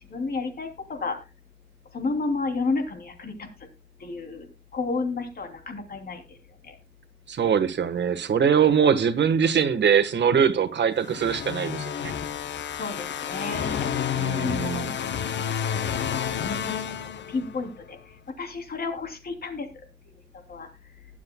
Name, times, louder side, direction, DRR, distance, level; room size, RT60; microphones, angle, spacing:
voice 1, 0.1-1.2 1.9-3.7 4.0-6.4 6.6-6.7 12.8-13.9 14.4-15.0 15.3-16.0 16.2-18.0 18.4-19.7 20.5-20.7, left 3 dB, 55° left, 3.0 m, -32 dB
voice 2, 7.3-12.1 14.2-14.9, right 7 dB, 65° right, 1.4 m, -22 dB
sound 1, 11.0-17.7, left 8 dB, 70° left, 0.8 m, -30 dB
20.5 x 7.6 x 2.2 m
wide cardioid pair, 150°, 19 cm